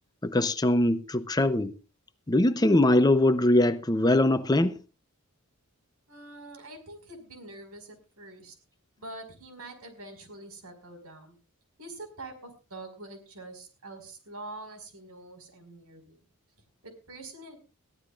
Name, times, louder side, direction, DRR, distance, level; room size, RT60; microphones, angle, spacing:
voice 1, 0.2-1.7 2.3-4.8, left 1 dB, 20° left, 0.6 m, -22 dB
voice 2, 6.1-8.6 9.0-11.4 11.8-16.2 16.8-17.6, right 2 dB, 90° right, 5.2 m, -45 dB
21.5 x 15.0 x 2.5 m
head